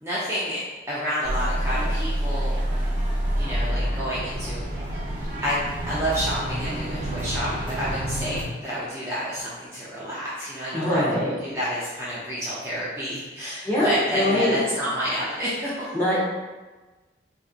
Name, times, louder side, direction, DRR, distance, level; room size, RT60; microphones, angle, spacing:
voice 1, 0.0-0.6 0.9-2.6 3.4-4.7 5.4-11.0 11.4-15.9, equal, 15° right, -9 dB, 0.5 m, -29 dB
sound 1, 1.2-8.4, equal, 45° right, 0.8 m, -27 dB
voice 2, 10.7-11.4 13.4-14.6 15.9-16.2, left 1 dB, 10° left, -8 dB, 0.9 m, -23 dB
4.2 x 2.6 x 2.4 m, 1.2 s
head